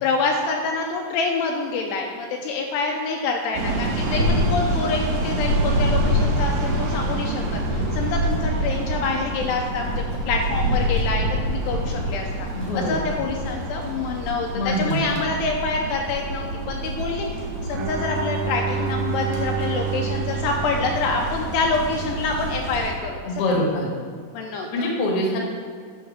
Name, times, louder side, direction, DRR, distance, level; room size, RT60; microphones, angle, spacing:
voice 1, 0.0-9.9 10.3-23.6 24.3-24.9, left 4 dB, 80° left, 1 dB, 2.5 m, -26 dB
sound 1, 3.5-22.9, right 1 dB, 55° right, 3.0 m, -26 dB
voice 2, 12.5-12.9 14.5-15.1 23.3-23.9 24.7-25.4, left 1 dB, 55° left, -1 dB, 1.6 m, -24 dB
Bowed string instrument, 17.7-21.7, right 6 dB, 90° right, 3.0 m, -29 dB
9.4 x 6.2 x 4.9 m, 2.1 s
omnidirectional pair, 5.2 m